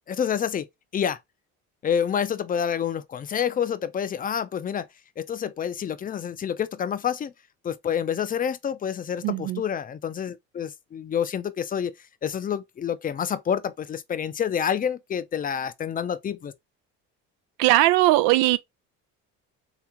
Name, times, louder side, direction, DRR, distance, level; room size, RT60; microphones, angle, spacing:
voice 1, 0.1-0.6 0.9-1.2 1.8-4.9 5.2-7.3 7.6-11.9 12.2-16.5, left 8 dB, 30° left, 0.5 m, -28 dB
voice 2, 9.2-9.6 17.6-18.6, right 17 dB, 85° right, 0.5 m, -19 dB
3.4 x 3.0 x 3.5 m
supercardioid pair, 95°, 30 cm